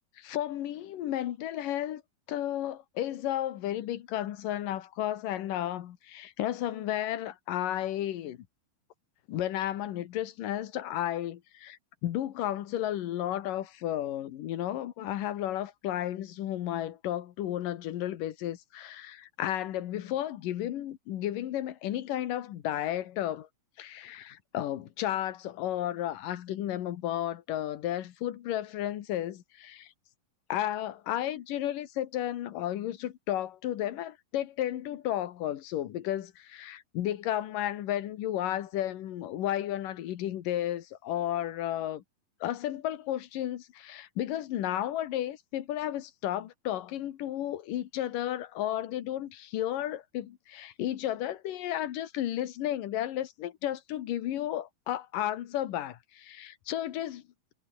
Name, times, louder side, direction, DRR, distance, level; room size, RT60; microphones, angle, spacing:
voice 1, 0.2-2.0 2.3-8.4 9.3-23.5 23.8-29.9 30.5-42.0 42.4-57.2, left 12 dB, 70° left, 2.9 m, -33 dB
omnidirectional pair, 4.1 m